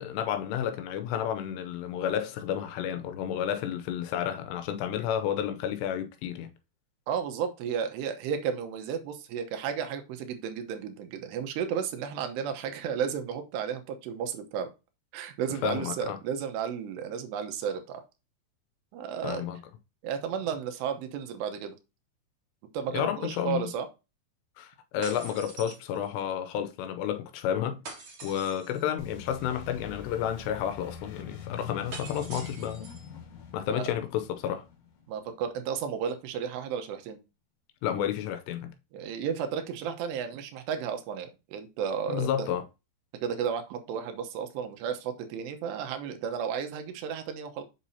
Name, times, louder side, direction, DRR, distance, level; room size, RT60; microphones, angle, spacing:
voice 1, 0.0-6.5 15.6-16.2 19.2-19.6 22.9-23.7 24.6-27.8 28.2-32.9 33.5-34.7 37.8-38.7 42.1-42.7, left 9 dB, 85° left, 2.8 m, -31 dB
voice 2, 7.1-14.7 15.1-18.0 18.9-19.5 20.0-21.8 22.7-23.9 33.7-33.9 35.1-37.2 38.9-42.5 43.2-47.6, right 7 dB, 80° right, 3.1 m, -33 dB
sound 1, 25.0-26.3 27.8-28.8 31.9-33.1, right 4 dB, 50° right, 1.7 m, -44 dB
sound 2, 29.0-35.6, left 7 dB, 55° left, 2.3 m, -43 dB
7.4 x 6.1 x 2.7 m
omnidirectional pair, 5.0 m